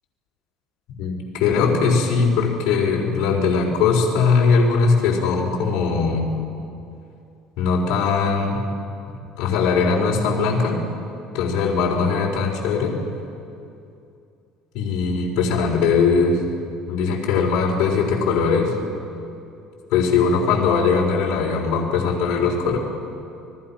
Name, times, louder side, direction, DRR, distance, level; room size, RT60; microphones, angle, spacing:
voice 1, 1.0-6.3 7.6-8.6 9.4-10.8 11.3-12.9 14.7-16.4 16.9-18.7 19.9-22.8, left 5 dB, 60° left, -2 dB, 4.4 m, -20 dB
29.5 x 21.0 x 5.8 m, 2.6 s
cardioid pair, 175°, 0 cm